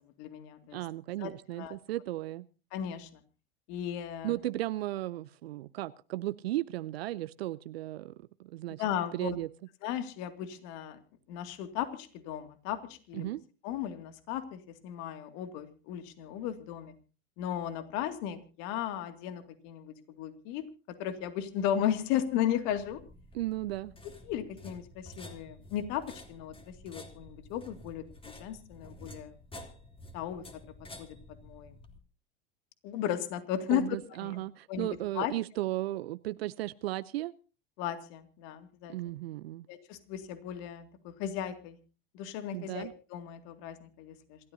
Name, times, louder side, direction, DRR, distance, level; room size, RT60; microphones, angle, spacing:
voice 1, 0.2-0.8 1.2-1.8 2.7-3.1 3.7-4.3 8.8-9.4 9.8-11.0 11.3-13.3 13.6-16.9 17.4-20.7 21.0-23.0 24.3-29.3 30.1-30.4 31.0-31.2 31.4-31.7 32.8-33.8 34.2-34.4 34.7-34.9 35.2-35.3 37.8-38.9 39.7-41.8 42.1-44.4, left 10 dB, 60° left, 8 dB, 2.3 m, -35 dB
voice 2, 0.7-2.5 4.2-8.8 9.1-9.5 13.1-13.4 23.3-23.9 33.7-37.3 38.9-39.7 42.5-42.9, right 16 dB, 75° right, 15 dB, 0.7 m, -35 dB
sound 1, 22.7-32.0, left 1 dB, 15° left, 3.2 m, -50 dB
27.0 x 13.0 x 2.8 m, 0.36 s
hypercardioid pair, 90°, 31 cm